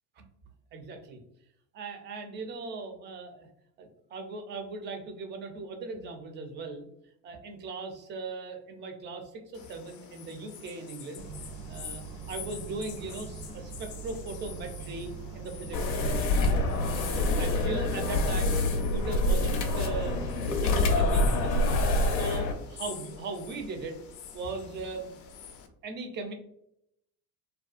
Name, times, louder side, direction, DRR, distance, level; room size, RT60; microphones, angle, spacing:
voice 1, 0.7-1.2 1.7-3.5 3.8-6.9 7.2-16.3 16.8-21.8 22.1-22.5 22.8-24.0 24.3-25.1 25.8-26.3, right 3 dB, 25° right, 5 dB, 0.3 m, -39 dB
sound 1, 9.5-25.7, left 6 dB, 40° left, 0.4 m, -47 dB
sound 2, 11.2-17.6, right 5 dB, 80° right, 0.6 m, -42 dB
sound 3, 15.7-22.5, left 2 dB, 90° left, 0.5 m, -26 dB
2.5 x 2.2 x 2.4 m, 0.77 s
hypercardioid pair, 75°, 50 cm